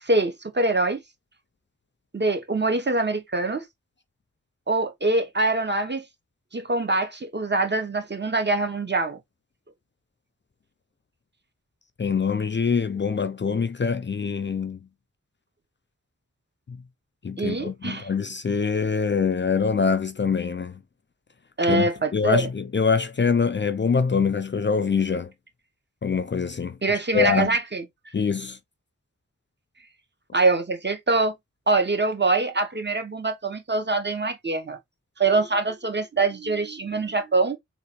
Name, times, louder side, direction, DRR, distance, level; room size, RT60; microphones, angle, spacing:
voice 1, 0.0-1.0 2.1-3.6 4.7-6.0 6.5-9.2 17.4-18.1 21.6-22.5 26.8-27.8 30.3-31.3 31.7-34.8 35.2-37.6, right 3 dB, 35° right, 0.9 m, -24 dB
voice 2, 12.0-14.8 16.7-16.8 17.2-20.8 21.7-25.3 26.0-26.8 27.1-27.6 28.1-28.6, left 5 dB, 40° left, 0.4 m, -24 dB
3.8 x 2.5 x 2.9 m
wide cardioid pair, 55°, 29 cm